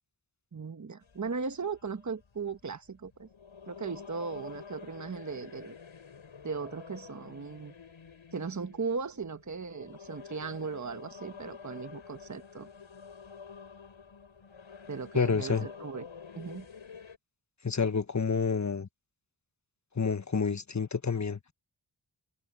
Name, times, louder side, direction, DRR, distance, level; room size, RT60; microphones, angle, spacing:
voice 1, 0.5-3.3 3.7-5.7 6.4-7.7 8.3-12.7 14.9-16.1 16.3-16.7, right 5 dB, 35° right, 1.2 m, -37 dB
sound 1, 1.0-17.2, left 6 dB, 85° left, 7.7 m, -49 dB
voice 2, 15.1-15.7 17.6-18.9 19.9-21.5, left 5 dB, 35° left, 1.3 m, -29 dB
cardioid pair, 40°, 47 cm